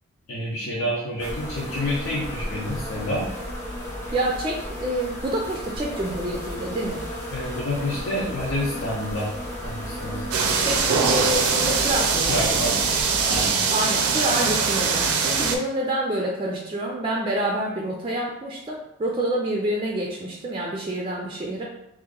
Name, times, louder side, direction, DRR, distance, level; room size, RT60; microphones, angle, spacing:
voice 1, 0.3-3.3 7.3-9.3 9.6-10.3 12.3-12.8 13.3-13.6, left 1 dB, 70° left, -7 dB, 0.7 m, -28 dB
sound 1, 1.2-13.5, equal, 10° left, 0.7 m, -34 dB
voice 2, 4.1-7.0 10.6-12.8 13.7-21.6, right 1 dB, 20° right, -2 dB, 0.3 m, -27 dB
sound 2, 10.3-15.6, right 5 dB, 85° right, 0.5 m, -22 dB
2.8 x 2.4 x 3.8 m, 0.87 s
head